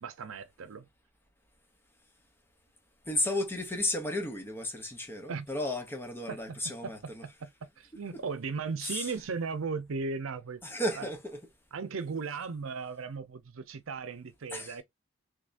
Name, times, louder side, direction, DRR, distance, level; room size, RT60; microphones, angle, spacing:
voice 1, 0.0-0.9 5.3-5.5 6.3-6.9 7.2-7.5 7.8-10.6 11.0-11.1 11.7-14.8, right 4 dB, 85° right, 0.6 m, -37 dB
voice 2, 3.1-7.2 8.1-8.2 8.8-9.1 10.6-11.4 14.5-14.8, left 1 dB, 10° left, 0.7 m, -34 dB
3.4 x 3.2 x 2.5 m
head